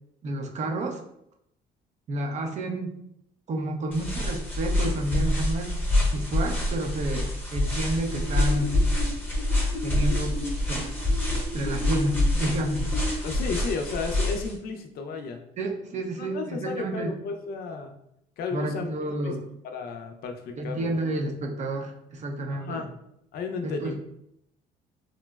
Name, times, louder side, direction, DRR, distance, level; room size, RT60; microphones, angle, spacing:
voice 1, 0.2-1.0 2.1-2.9 3.5-5.7 6.1-8.8 9.8-10.4 10.7-10.9 11.5-12.9 15.6-17.1 18.5-19.4 20.6-22.8 23.6-23.9, right 1 dB, 45° right, 3 dB, 0.5 m, -30 dB
sound 1, 3.9-14.5, left 1 dB, 10° left, 0.9 m, -26 dB
sound 2, 8.1-13.1, left 1 dB, 70° right, 1.2 m, -36 dB
voice 2, 13.2-15.4 16.2-17.9 18.4-18.9 19.2-19.3 19.6-21.2 22.5-22.9 23.3-23.9, left 4 dB, 65° left, 5 dB, 0.4 m, -33 dB
3.7 x 2.0 x 2.2 m, 0.77 s
cardioid pair, 110°, 17 cm